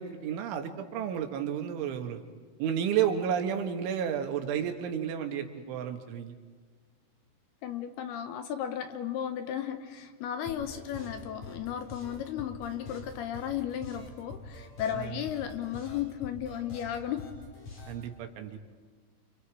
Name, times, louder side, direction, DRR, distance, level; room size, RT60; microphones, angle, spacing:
voice 1, 0.0-2.2 2.6-6.3 14.9-15.2 17.9-18.6, right 8 dB, 85° right, 5 dB, 4.1 m, -31 dB
voice 2, 7.6-17.3, left 10 dB, 75° left, 8 dB, 2.6 m, -35 dB
sound 1, 10.5-18.0, left 3 dB, 40° left, 5.9 m, -45 dB
29.5 x 27.0 x 4.9 m, 1.4 s
omnidirectional pair, 5.3 m